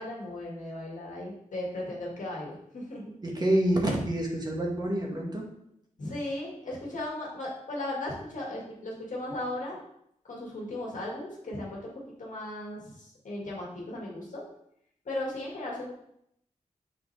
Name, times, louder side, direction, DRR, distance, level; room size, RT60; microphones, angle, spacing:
voice 1, 0.0-3.1 6.0-9.8 10.2-11.9 12.2-14.4 15.1-15.9, left 1 dB, 70° left, -3 dB, 2.0 m, -36 dB
voice 2, 3.2-5.5, right 1 dB, 30° right, -1 dB, 1.5 m, -27 dB
6.7 x 4.2 x 3.3 m, 0.74 s
cardioid pair, 65°, 14 cm